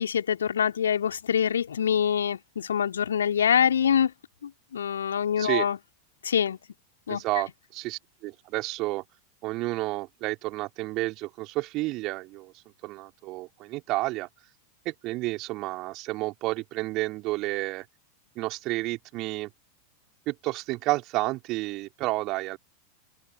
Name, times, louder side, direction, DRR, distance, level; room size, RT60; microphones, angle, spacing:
voice 1, 0.0-4.1 4.4-5.8 6.2-6.6 7.1-7.2, left 8 dB, 65° left, 3.5 m, -25 dB
voice 2, 5.4-5.7 7.1-9.0 9.4-12.5 12.8-14.3 14.9-17.9 18.4-19.5 20.3-22.6, right 20 dB, 40° right, 3.6 m, -30 dB
open air
figure-of-eight pair, 90°, 0 cm